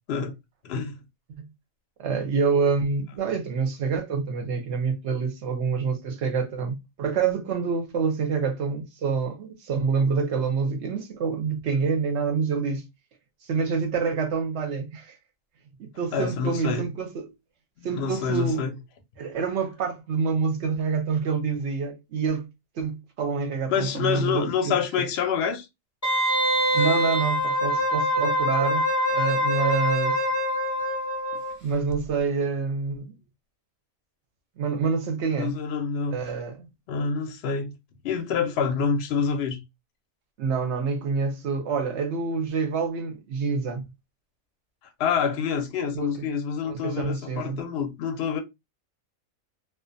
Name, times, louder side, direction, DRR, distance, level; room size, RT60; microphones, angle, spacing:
voice 1, 0.6-1.0 16.1-16.9 17.8-18.7 23.7-25.7 35.4-36.2 36.9-37.7 38.0-39.6 45.0-48.4, left 6 dB, 60° left, 0.7 m, -27 dB
voice 2, 2.0-12.8 13.5-15.2 15.8-17.3 17.8-18.7 19.2-22.5 22.8-25.0 26.7-28.8 29.1-30.2 31.6-33.1 34.6-35.6 36.1-36.7 40.4-43.8 45.9-46.1 46.6-47.6, right 5 dB, 65° right, 0.8 m, -27 dB
Wind instrument woodwind instrument, 26.0-31.6 31.9-32.0, equal, 20° left, 0.5 m, -24 dB
2.4 x 2.1 x 2.5 m
omnidirectional pair, 1.5 m